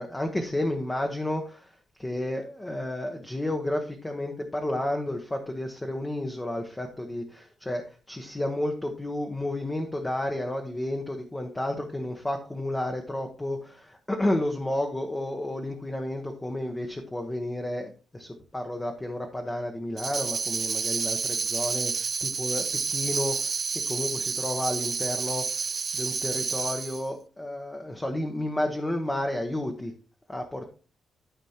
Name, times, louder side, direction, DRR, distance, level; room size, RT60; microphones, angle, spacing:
voice 1, 0.0-1.7 2.0-23.6 23.9-25.7 25.9-29.9 30.3-30.7, left 1 dB, 15° left, 3 dB, 1.0 m, -31 dB
Tambourine, 20.0-27.1, right 5 dB, 40° right, 0.4 m, -30 dB
12.5 x 5.2 x 2.9 m, 0.37 s
cardioid pair, 120°, 0 cm